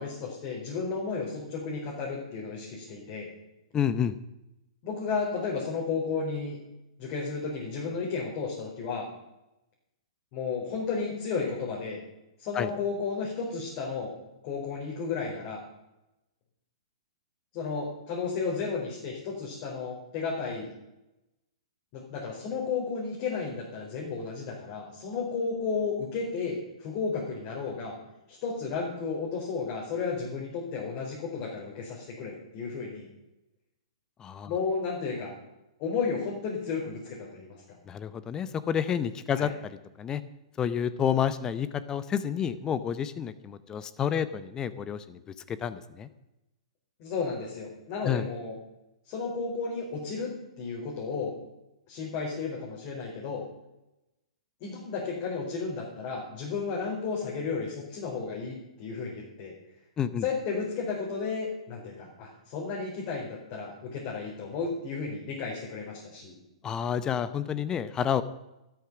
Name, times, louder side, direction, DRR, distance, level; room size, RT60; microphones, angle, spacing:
voice 1, 0.0-3.3 4.8-6.6 7.0-9.1 10.3-12.0 12.4-14.1 14.4-15.6 17.5-20.7 21.9-28.0 28.3-33.1 34.5-35.3 35.8-37.5 39.3-39.5 47.0-48.6 49.1-51.3 51.9-53.4 54.6-59.5 60.2-66.4, left 5 dB, 40° left, -3 dB, 4.2 m, -33 dB
voice 2, 3.7-4.2 12.5-12.7 34.2-34.5 37.9-39.5 40.0-40.2 40.6-45.2 45.5-46.1 48.0-48.2 60.0-60.3 66.6-68.2, left 8 dB, 20° left, 14 dB, 0.8 m, -29 dB
13.0 x 11.5 x 6.0 m, 0.93 s
figure-of-eight pair, 115°, 3 cm